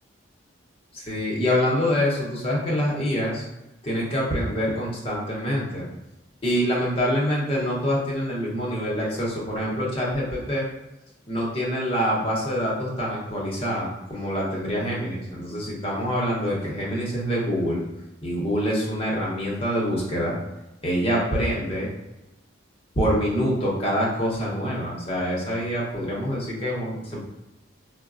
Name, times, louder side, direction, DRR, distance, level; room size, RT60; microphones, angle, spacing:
voice 1, 0.9-3.5 3.8-5.9 6.4-10.7 11.3-17.8 18.2-20.3 20.8-21.9 23.0-27.3, equal, 30° left, -4 dB, 0.7 m, -25 dB
3.9 x 2.0 x 2.4 m, 0.96 s
head